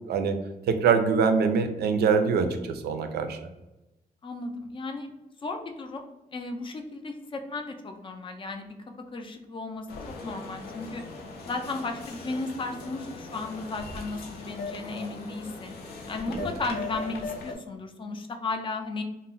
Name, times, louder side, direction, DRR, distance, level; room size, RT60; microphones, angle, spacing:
voice 1, 0.7-3.4 16.4-16.5, right 5 dB, 85° right, 7 dB, 0.4 m, -24 dB
voice 2, 4.2-5.1 5.4-6.0 6.3-8.8 9.1-9.9 10.2-11.0 11.5-15.8 16.1-19.0, left 3 dB, 30° left, 5 dB, 0.4 m, -34 dB
sound 1, 9.9-17.5, left 3 dB, 80° left, 0.5 m, -39 dB
2.2 x 2.0 x 3.7 m, 0.98 s
cardioid pair, 120°, 16 cm